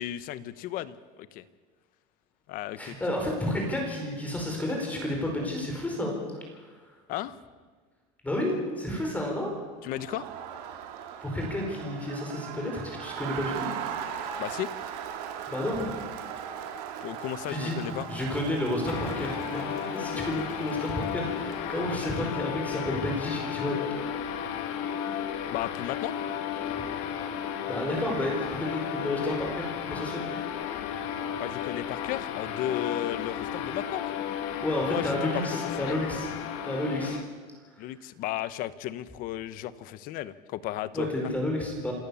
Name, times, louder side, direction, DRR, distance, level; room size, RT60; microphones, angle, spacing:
voice 1, 0.0-1.4 2.5-3.3 7.1-7.4 9.8-10.3 14.4-14.7 17.0-18.1 25.5-26.2 31.4-34.1 34.8-36.0 37.8-41.1, left 13 dB, 45° left, 16 dB, 1.0 m, -34 dB
voice 2, 2.8-6.2 8.2-9.5 11.2-13.7 14.1-14.4 15.5-15.9 17.5-24.2 27.7-30.5 34.6-36.3 36.6-37.2 40.9-41.9, left 1 dB, 5° left, 1 dB, 4.8 m, -31 dB
Crowd, 9.8-22.4, right 8 dB, 80° right, 2.6 m, -39 dB
sound 1, 18.8-37.2, left 9 dB, 65° left, 2.1 m, -34 dB
27.0 x 14.0 x 7.1 m, 1.4 s
cardioid pair, 160°, 20 cm